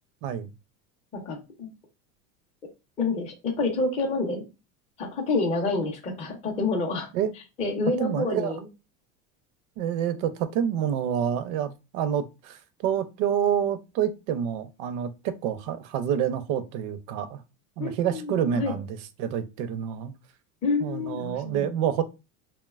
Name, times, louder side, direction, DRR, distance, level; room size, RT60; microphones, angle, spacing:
voice 1, 1.1-1.7 3.0-4.4 5.0-7.1 7.3-8.7 17.8-18.8 20.6-21.8, left 3 dB, 15° left, 0.4 m, -28 dB
voice 2, 8.0-8.5 9.8-17.4 17.8-18.9 19.2-20.1 20.8-22.0, right 9 dB, 60° right, 0.5 m, -28 dB
2.8 x 2.1 x 2.3 m
supercardioid pair, 135°, 40 cm